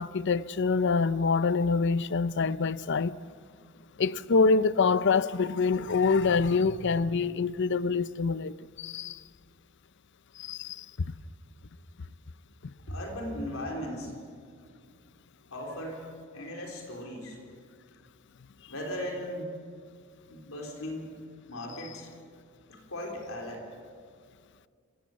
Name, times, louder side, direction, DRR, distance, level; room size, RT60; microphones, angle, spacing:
voice 1, 0.0-3.2 4.0-9.2 10.4-10.8 12.6-12.7, left 4 dB, 60° left, 0.6 m, -26 dB
voice 2, 12.9-14.1 15.5-16.0 16.3-17.4 18.7-19.5 20.3-21.2 21.5-22.1 22.7-23.7, equal, 90° left, 4.1 m, -37 dB
27.0 x 16.0 x 8.0 m
head